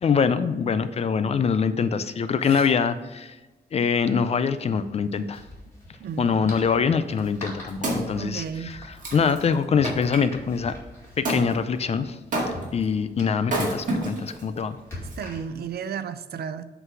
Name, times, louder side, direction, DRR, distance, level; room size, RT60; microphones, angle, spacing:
voice 1, 0.0-3.4 3.7-5.4 6.2-10.7 11.2-12.2 12.7-14.8, left 6 dB, 40° left, 12 dB, 0.4 m, -24 dB
sound 1, 3.0-3.2 4.6-15.8, left 1 dB, 15° left, 2.2 m, -44 dB
voice 2, 6.0-6.4 8.2-8.7 15.2-16.6, right 7 dB, 70° right, 12 dB, 0.5 m, -33 dB
Wood, 7.4-10.2 11.3-11.5 12.3-12.8 13.4-14.4 15.1-15.2, right 1 dB, 50° right, 1.9 m, -29 dB
8.0 x 3.9 x 6.1 m, 1.1 s
wide cardioid pair, 180°, 17 cm